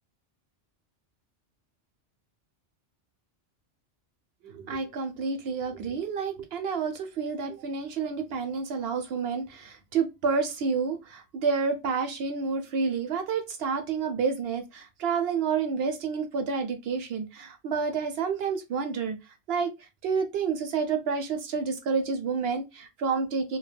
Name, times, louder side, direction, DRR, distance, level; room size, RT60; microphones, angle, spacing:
voice 1, 4.4-19.2 19.5-23.6, right 5 dB, 65° right, 0.7 m, -29 dB
2.2 x 2.2 x 3.2 m
omnidirectional pair, 1.2 m